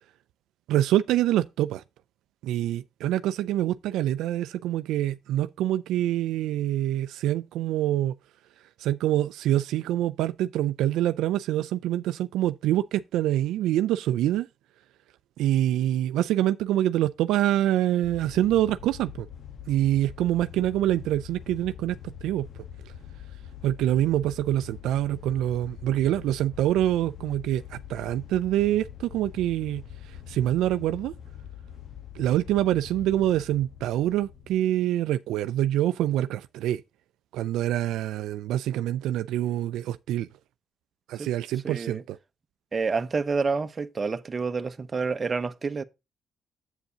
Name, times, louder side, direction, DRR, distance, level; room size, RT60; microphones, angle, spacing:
voice 1, 0.7-1.8 2.4-8.1 8.8-14.5 15.4-19.3 19.7-22.5 23.6-29.8 30.3-31.1 32.2-36.8 37.3-40.3 41.1-42.2, right 13 dB, 90° right, 0.4 m, -25 dB
sound 1, 18.0-34.6, left 9 dB, 65° left, 1.2 m, -44 dB
voice 2, 41.6-42.0 42.7-45.8, right 4 dB, 35° right, 0.9 m, -28 dB
8.2 x 7.9 x 2.8 m
cardioid pair, 90°, 0 cm